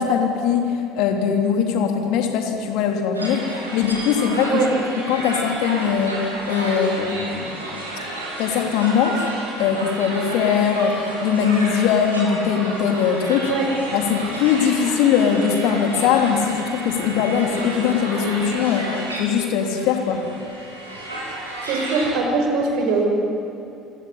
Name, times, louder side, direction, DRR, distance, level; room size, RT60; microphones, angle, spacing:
voice 1, 0.0-4.6 5.1-6.2 6.4-7.6 8.4-9.3 9.6-13.5 13.9-20.2, left 7 dB, 60° left, 4 dB, 3.2 m, -21 dB
sound 1, 3.1-22.1, right 1 dB, 85° right, 5.0 m, -32 dB
voice 2, 21.6-23.0, right 4 dB, 60° right, 1 dB, 5.8 m, -21 dB
27.0 x 17.0 x 9.8 m, 2.8 s
figure-of-eight pair, 60°, 0 cm